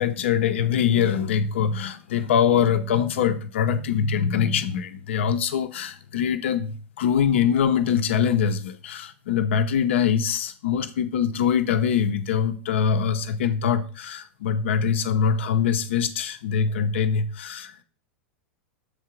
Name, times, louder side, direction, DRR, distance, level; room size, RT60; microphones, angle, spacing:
voice 1, 0.0-17.7, left 7 dB, 70° left, 0.9 m, -23 dB
7.2 x 3.7 x 5.9 m
hypercardioid pair, 95°, 7 cm